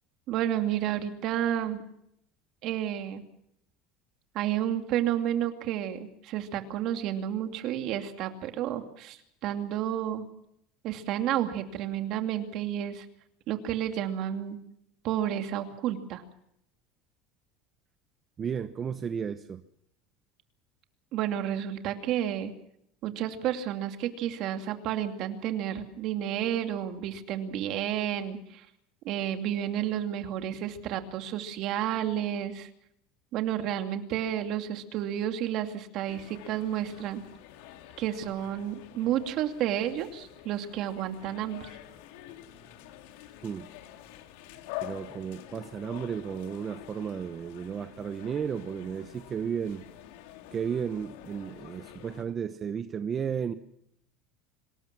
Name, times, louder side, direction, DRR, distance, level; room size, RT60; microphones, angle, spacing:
voice 1, 0.3-1.8 2.6-3.2 4.3-10.3 10.8-13.1 13.5-14.6 15.0-16.2 21.1-22.5 23.0-28.6 29.0-32.7 33.3-37.2 38.0-41.7, right 11 dB, 45° right, 6 dB, 2.6 m, -31 dB
voice 2, 18.4-19.6 43.4-43.7 44.8-49.8 50.5-53.5, right 7 dB, 25° right, 10 dB, 0.9 m, -33 dB
sound 1, 36.1-52.2, left 12 dB, 75° left, 3.0 m, -47 dB
25.5 x 20.0 x 6.1 m, 0.73 s
cardioid pair, 160°, 0 cm